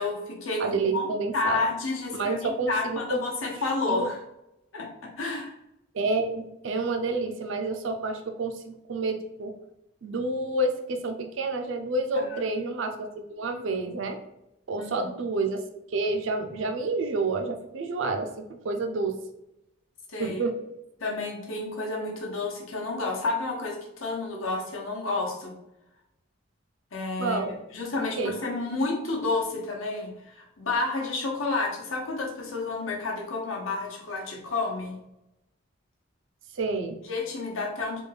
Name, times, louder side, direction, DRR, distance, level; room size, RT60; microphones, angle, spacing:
voice 1, 0.0-1.1 1.3-4.2 4.7-5.5 12.1-12.5 14.8-15.1 20.1-20.4 21.0-25.5 26.9-27.4 27.7-34.9 37.0-38.0, left 3 dB, 85° left, -1 dB, 0.9 m, -30 dB
voice 2, 0.6-1.6 2.1-3.2 3.9-4.1 5.9-9.6 10.0-14.2 14.7-19.2 20.2-20.6 27.2-27.5 28.2-28.4 36.5-37.0, right 3 dB, 70° right, 5 dB, 0.5 m, -29 dB
3.4 x 2.3 x 3.3 m, 0.86 s
head